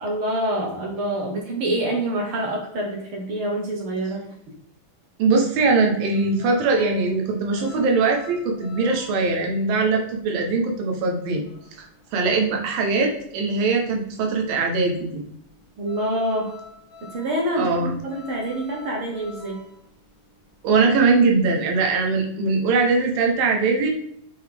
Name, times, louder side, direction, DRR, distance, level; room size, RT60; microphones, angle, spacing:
voice 1, 0.0-4.2 15.8-16.6 17.1-19.6, right 1 dB, 65° right, -1 dB, 1.3 m, -26 dB
voice 2, 5.2-11.4 11.8-15.2 17.6-17.9 20.6-23.9, right 4 dB, 85° right, 1 dB, 2.8 m, -21 dB
sound 1, 6.1-13.3 13.5-21.9, left 2 dB, 35° left, 1.5 m, -47 dB
8.5 x 3.9 x 3.5 m, 0.72 s
omnidirectional pair, 3.9 m